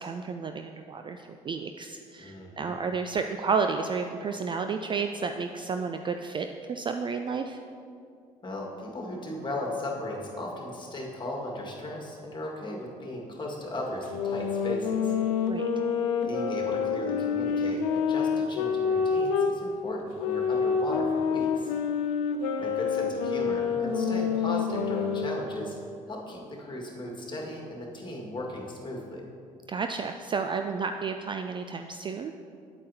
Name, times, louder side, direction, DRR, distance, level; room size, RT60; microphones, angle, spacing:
voice 1, 0.0-7.6 15.5-15.7 29.7-32.3, right 5 dB, 25° right, 6 dB, 0.3 m, -31 dB
voice 2, 2.2-2.7 8.4-15.1 16.2-21.7 22.6-25.7 26.1-29.3, left 1 dB, 25° left, -2 dB, 1.8 m, -37 dB
sound 1, 14.1-19.6 20.2-25.4, left 6 dB, 65° left, 0.6 m, -27 dB
9.0 x 8.3 x 2.8 m, 2.4 s
figure-of-eight pair, 50°, 19 cm